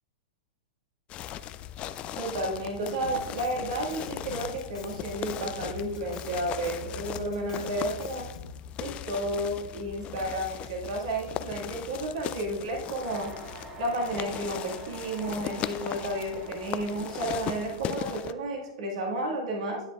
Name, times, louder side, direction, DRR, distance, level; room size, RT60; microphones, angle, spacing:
sound 1, 1.1-18.3, left 11 dB, 30° left, 0.3 m, -38 dB
voice 1, 2.2-8.2 8.8-13.3 13.8-19.8, right 1 dB, 70° right, -1 dB, 1.8 m, -32 dB
Drum kit, 3.0-8.6, left 3 dB, 75° left, 0.9 m, -45 dB
sound 2, 13.0-18.3, right 1 dB, 25° right, 1.5 m, -45 dB
9.8 x 8.0 x 2.4 m, 0.90 s
hypercardioid pair, 115°, 4 cm